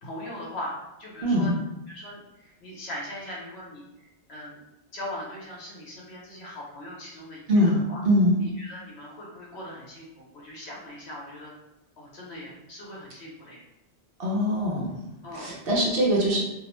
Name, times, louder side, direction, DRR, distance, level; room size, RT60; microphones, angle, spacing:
voice 1, 0.0-1.5 1.9-4.6 4.9-8.0 8.4-11.5 12.0-13.6 15.2-15.5, left 1 dB, 70° left, -4 dB, 1.0 m, -40 dB
voice 2, 1.2-1.5 7.5-7.8 8.0-8.4 14.2-14.9 15.3-16.4, equal, 60° right, -4 dB, 0.8 m, -22 dB
2.5 x 2.0 x 3.0 m, 0.93 s
omnidirectional pair, 1.2 m